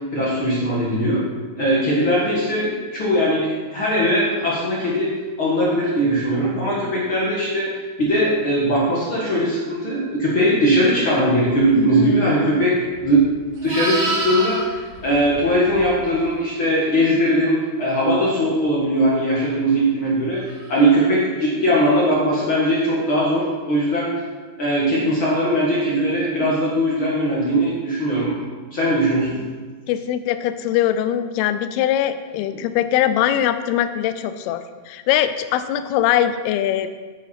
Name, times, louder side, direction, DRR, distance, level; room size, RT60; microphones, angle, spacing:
voice 1, 0.1-1.2 1.6-5.1 5.4-7.7 8.0-12.7 13.0-13.2 13.6-20.4 20.7-24.1 24.6-28.4 28.7-29.4, equal, 60° left, -6 dB, 1.3 m, -20 dB
voice 2, 12.0-12.6 29.9-36.9, left 11 dB, 85° left, 11 dB, 2.3 m, -22 dB
Livestock farm animals working animals, 12.9-16.2 20.6-20.8, right 2 dB, 75° right, 1.4 m, -28 dB
9.3 x 8.3 x 4.3 m, 1.4 s
omnidirectional pair, 5.0 m